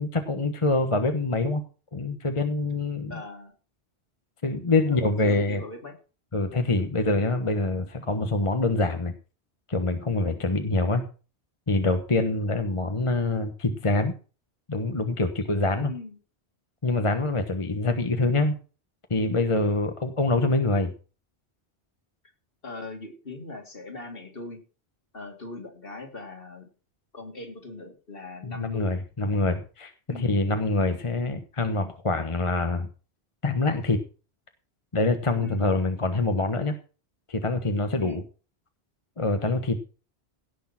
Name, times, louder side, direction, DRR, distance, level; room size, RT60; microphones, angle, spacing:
voice 1, 0.0-1.6 1.9-3.2 4.4-5.6 6.3-9.2 9.7-11.0 11.7-14.1 14.7-15.9 16.8-18.6 19.1-20.9 28.4-32.9 33.4-34.0 34.9-36.8 37.3-38.2 39.2-39.8, left 2 dB, 30° left, 7 dB, 1.2 m, -25 dB
voice 2, 3.1-3.5 4.9-5.9 12.1-12.3 15.7-16.1 22.6-24.6 25.1-26.7 27.1-28.9 30.1-30.2 35.4-35.8 38.0-38.2, left 3 dB, 55° left, 3 dB, 3.2 m, -40 dB
17.0 x 6.6 x 5.9 m, 0.36 s
omnidirectional pair, 1.1 m